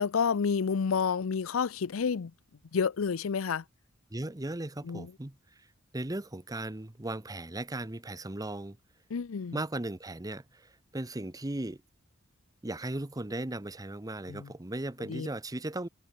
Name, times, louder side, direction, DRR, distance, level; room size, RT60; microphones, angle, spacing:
voice 1, 0.0-2.3 2.7-3.6 4.8-5.1 9.1-9.6 14.3-14.5 15.1-15.3, left 6 dB, 85° left, 0.5 m, -29 dB
voice 2, 4.1-5.4 5.9-8.8 9.5-11.8 12.6-15.9, right 1 dB, 20° right, 0.9 m, -37 dB
head